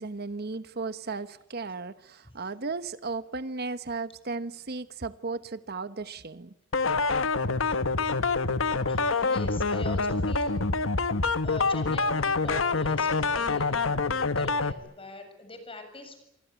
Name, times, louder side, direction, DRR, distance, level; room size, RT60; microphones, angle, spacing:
voice 1, 0.0-6.5, right 3 dB, 55° right, 1.1 m, -35 dB
sound 1, 6.7-14.7, left 4 dB, 85° left, 1.3 m, -26 dB
voice 2, 8.9-10.6 11.4-16.2, left 2 dB, 30° left, 7.1 m, -43 dB
28.0 x 25.0 x 8.3 m
head